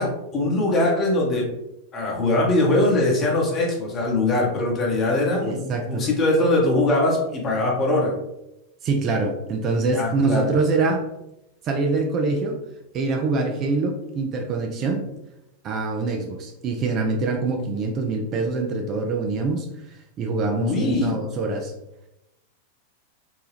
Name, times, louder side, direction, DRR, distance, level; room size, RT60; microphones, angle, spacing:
voice 1, 0.0-1.5 1.9-8.2 9.9-10.5 20.6-21.2, left 2 dB, 25° left, -2 dB, 0.9 m, -22 dB
voice 2, 5.4-6.0 8.8-11.1 11.6-12.6 12.9-15.0 15.6-21.7, right 3 dB, 35° right, 2 dB, 0.4 m, -24 dB
2.7 x 2.2 x 3.3 m, 0.88 s
figure-of-eight pair, 90°, 0 cm